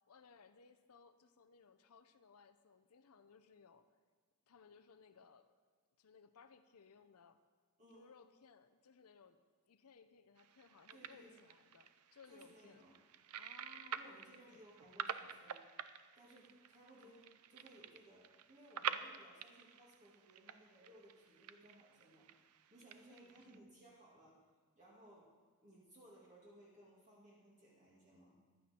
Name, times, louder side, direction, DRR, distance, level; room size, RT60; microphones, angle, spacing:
voice 1, 0.1-3.9 4.5-5.5 6.0-7.4 7.9-9.4 9.7-12.8 13.3-14.6 17.0-17.4 23.1-23.6, left 5 dB, 80° left, 10 dB, 0.6 m, -63 dB
sound 1, 10.4-23.6, right 8 dB, 85° right, 0.5 m, -49 dB
voice 2, 10.9-11.4 12.3-12.9 13.8-15.6 16.2-17.2 17.5-22.3 22.7-24.4 24.7-25.3 25.6-28.4, right 1 dB, 35° right, -5 dB, 2.1 m, -62 dB
15.0 x 11.5 x 4.3 m, 1.5 s
head